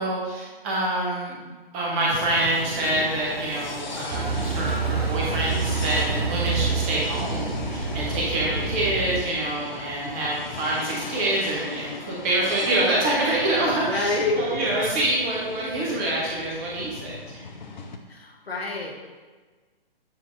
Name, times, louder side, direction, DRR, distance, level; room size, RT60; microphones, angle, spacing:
voice 1, 0.0-17.3, right 2 dB, 15° right, -4 dB, 0.6 m, -26 dB
sound 1, 1.7-6.9, right 3 dB, 55° right, 0.8 m, -40 dB
sound 2, 2.1-18.0, left 3 dB, 50° left, 0.6 m, -38 dB
Car passing by / Idling / Accelerating revving vroom, 4.1-9.2, right 4 dB, 85° right, 0.7 m, -27 dB
voice 2, 13.8-14.7 18.1-19.1, left 2 dB, 75° left, 0 dB, 1.3 m, -28 dB
7.5 x 2.7 x 4.8 m, 1.4 s
figure-of-eight pair, 135°, 30 cm